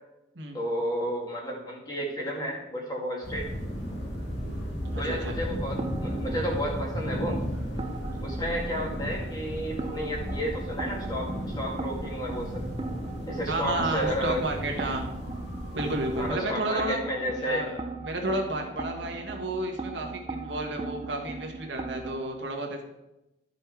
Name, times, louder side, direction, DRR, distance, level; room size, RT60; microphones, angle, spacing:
voice 1, 0.5-3.5 5.0-7.4 8.2-12.6 13.3-14.9 16.1-17.6, equal, 20° left, -2 dB, 2.1 m, -32 dB
sound 1, 3.2-16.3, equal, 70° left, 1.9 m, -34 dB
sound 2, 4.8-22.2, right 3 dB, 25° right, 0.6 m, -39 dB
voice 2, 4.9-5.4 13.5-15.1 15.7-17.0 17.4-22.8, right 2 dB, 80° right, 2 dB, 1.5 m, -31 dB
12.5 x 5.4 x 4.7 m, 0.95 s
head